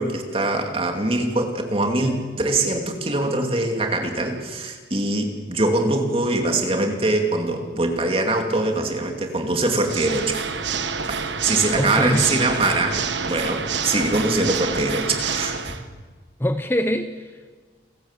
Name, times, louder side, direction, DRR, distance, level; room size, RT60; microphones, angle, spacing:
voice 1, 0.0-10.4 11.1-13.0 13.3-15.7, right 2 dB, 30° right, 3 dB, 2.7 m, -23 dB
Water / Mechanisms, 9.8-15.8, right 5 dB, 80° right, 1.3 m, -28 dB
voice 2, 11.7-12.2 16.4-17.6, equal, 10° left, 8 dB, 0.7 m, -24 dB
29.0 x 13.5 x 8.3 m, 1.4 s
head